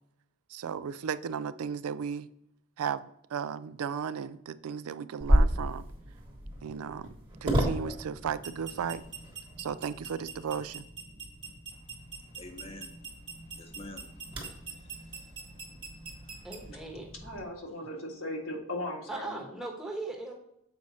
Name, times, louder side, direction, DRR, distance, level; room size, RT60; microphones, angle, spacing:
voice 1, 0.5-2.3 2.8-5.9 6.6-7.1 7.4-9.0 9.6-10.8, right 7 dB, 85° right, 0.4 m, -35 dB
sound 1, 5.2-17.4, right 1 dB, 20° right, 1.3 m, -33 dB
voice 2, 11.7-16.5, left 2 dB, 25° left, 0.8 m, -51 dB
voice 3, 16.4-17.1 19.1-20.3, right 2 dB, ahead, 1.0 m, -38 dB
voice 4, 17.2-19.6, left 1 dB, 70° left, 1.5 m, -38 dB
6.9 x 4.8 x 4.1 m
head